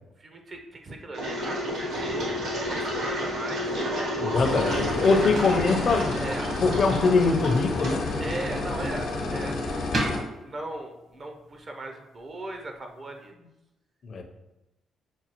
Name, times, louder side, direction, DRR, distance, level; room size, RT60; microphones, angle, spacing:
voice 1, 0.2-3.8 4.5-5.4 6.1-6.5 8.2-9.6 10.1-13.3, right 2 dB, 40° right, 4 dB, 0.5 m, -38 dB
Engine, 1.1-8.9, equal, 85° right, 1.4 m, -31 dB
sound 1, 4.1-13.3, right 1 dB, 60° right, 1.1 m, -40 dB
voice 2, 4.2-6.2 6.6-8.3 14.0-14.2, left 4 dB, 50° left, 4 dB, 0.5 m, -23 dB
sound 2, 4.3-10.2, left 2 dB, 75° left, 0.9 m, -30 dB
6.0 x 2.3 x 2.9 m, 0.97 s
cardioid pair, 90°, 0 cm